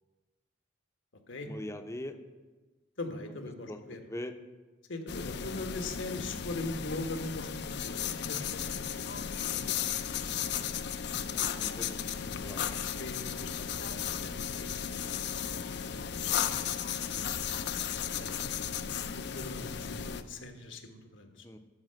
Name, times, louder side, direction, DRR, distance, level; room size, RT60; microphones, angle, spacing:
voice 1, 1.4-2.2 3.7-3.8 4.1-4.3 11.5-12.7 21.4-21.6, left 1 dB, 15° left, 7 dB, 0.6 m, -41 dB
voice 2, 3.0-4.0 4.9-9.1 9.4-10.1 12.8-15.2 15.5-17.4 17.9-18.6 19.1-21.4, left 2 dB, 80° left, 5 dB, 1.4 m, -42 dB
sound 1, 5.1-20.2, left 8 dB, 60° left, 0.6 m, -35 dB
12.5 x 5.5 x 7.7 m, 1.3 s
head